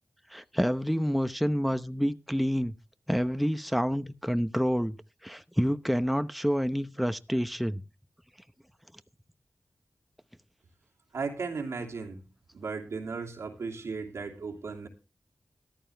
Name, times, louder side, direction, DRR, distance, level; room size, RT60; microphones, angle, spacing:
voice 1, 0.3-2.7 3.1-4.9 5.2-7.8, equal, ahead, 0.8 m, -28 dB
voice 2, 11.1-12.2 12.5-14.9, right 4 dB, 85° right, 2.7 m, -36 dB
14.0 x 11.5 x 3.4 m
cardioid pair, 45°, 5 cm